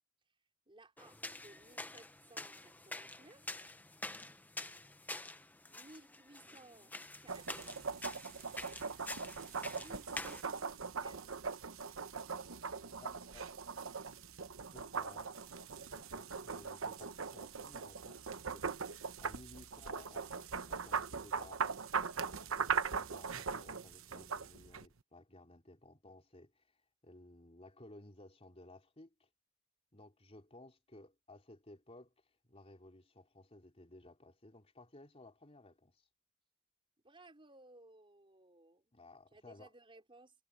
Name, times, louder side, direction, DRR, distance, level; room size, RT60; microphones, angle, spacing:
voice 1, 0.7-3.7 5.7-6.9 7.2-7.8 9.5-11.3 37.0-38.9 39.3-40.3, right 2 dB, 25° right, 5.2 m, -60 dB
sound 1, 1.0-10.4, left 2 dB, 10° left, 0.9 m, -47 dB
sound 2, 7.3-24.8, right 5 dB, 75° right, 1.0 m, -40 dB
voice 2, 13.0-13.4 14.7-15.3 15.8-18.7 19.2-26.6 27.0-29.3 29.9-32.1 32.5-36.0 38.9-39.7, left 2 dB, 30° left, 3.5 m, -58 dB
head